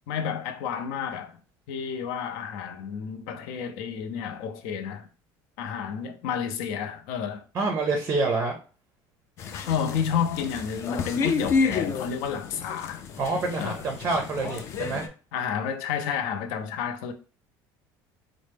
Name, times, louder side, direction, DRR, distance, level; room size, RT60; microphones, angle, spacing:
voice 1, 0.1-1.4 1.7-5.1 5.6-7.4 9.7-13.0 13.6-13.8 15.3-17.1, left 7 dB, 75° left, 0.6 m, -30 dB
voice 2, 7.5-8.6 13.2-15.1, right 3 dB, 25° right, 0.5 m, -27 dB
sound 1, 9.4-15.1, left 5 dB, 30° left, 0.4 m, -30 dB
4.2 x 2.0 x 3.3 m
cardioid pair, 180°, 9 cm